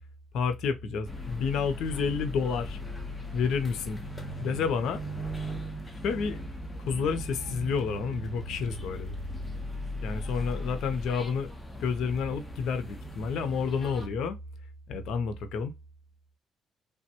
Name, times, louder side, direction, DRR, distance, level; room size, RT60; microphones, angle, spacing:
voice 1, 0.3-2.8 3.3-4.0 4.4-5.0 6.0-6.4 6.9-9.2 10.0-11.5 11.8-14.4 14.9-15.7, left 5 dB, 80° left, 0.6 m, -30 dB
sound 1, 1.0-14.1, equal, 15° left, 0.8 m, -38 dB
3.3 x 2.2 x 2.8 m
cardioid pair, 90°, 0 cm